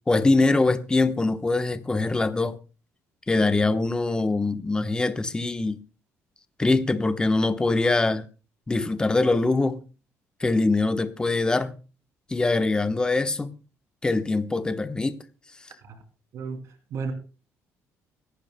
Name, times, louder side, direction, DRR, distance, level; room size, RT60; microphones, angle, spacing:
voice 1, 0.1-2.6 3.3-5.8 6.6-8.3 8.7-9.8 10.4-11.8 12.3-13.5 14.0-15.2, left 3 dB, 15° left, 1.0 m, -23 dB
voice 2, 16.3-17.1, right 5 dB, 65° right, 2.8 m, -34 dB
24.0 x 12.0 x 2.2 m
cardioid pair, 120°, 6 cm